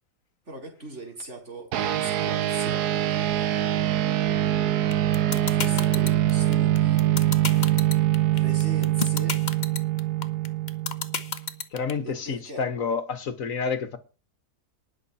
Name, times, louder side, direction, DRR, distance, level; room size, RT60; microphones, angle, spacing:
voice 1, 0.5-3.3 5.3-7.0 8.3-9.4 12.0-12.6, right 1 dB, 45° right, 4.8 m, -40 dB
sound 1, 1.7-11.5, right 13 dB, 80° right, 1.4 m, -24 dB
sound 2, 4.9-11.9, left 5 dB, 30° left, 1.1 m, -29 dB
voice 2, 11.7-14.0, left 5 dB, 55° left, 1.8 m, -29 dB
19.5 x 6.8 x 4.3 m
omnidirectional pair, 1.7 m